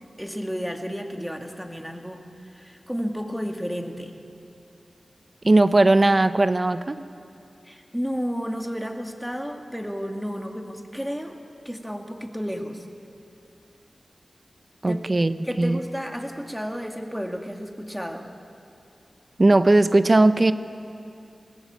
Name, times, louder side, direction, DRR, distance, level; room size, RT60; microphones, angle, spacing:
voice 1, 0.2-4.2 7.6-11.4 11.6-12.8 14.9-15.0 15.4-18.3, equal, ahead, 3 dB, 2.3 m, -32 dB
voice 2, 5.4-7.0 14.8-15.8 19.4-20.5, right 2 dB, 40° right, 12 dB, 0.8 m, -18 dB
20.5 x 19.5 x 8.8 m, 2.5 s
wide cardioid pair, 65°, 0 cm